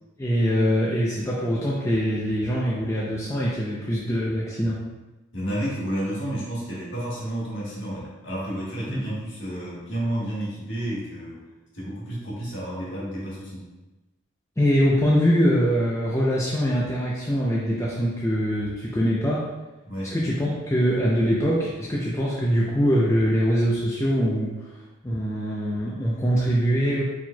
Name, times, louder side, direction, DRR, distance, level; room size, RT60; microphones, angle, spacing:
voice 1, 0.2-4.8 8.9-9.1 14.6-19.5 20.1-24.7 25.0-27.0, equal, 15° left, -6 dB, 0.5 m, -23 dB
voice 2, 5.3-11.4 11.7-13.6 19.9-20.2, right 1 dB, 55° left, -6 dB, 1.5 m, -31 dB
4.4 x 4.3 x 2.2 m, 1.1 s
head